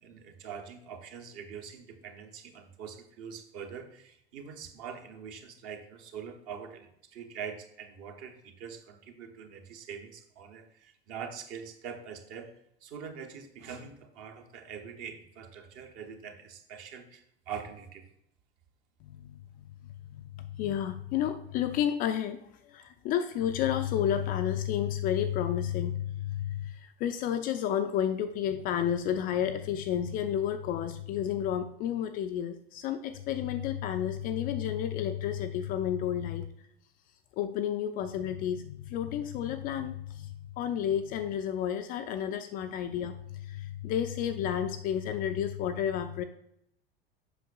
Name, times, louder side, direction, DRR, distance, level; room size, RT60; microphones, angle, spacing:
voice 1, 0.0-18.1, right 7 dB, 45° right, 5 dB, 1.0 m, -44 dB
voice 2, 19.0-36.4 37.4-46.2, left 10 dB, 30° left, 8 dB, 0.4 m, -31 dB
7.9 x 5.8 x 2.3 m, 0.74 s
figure-of-eight pair, 80°, 30 cm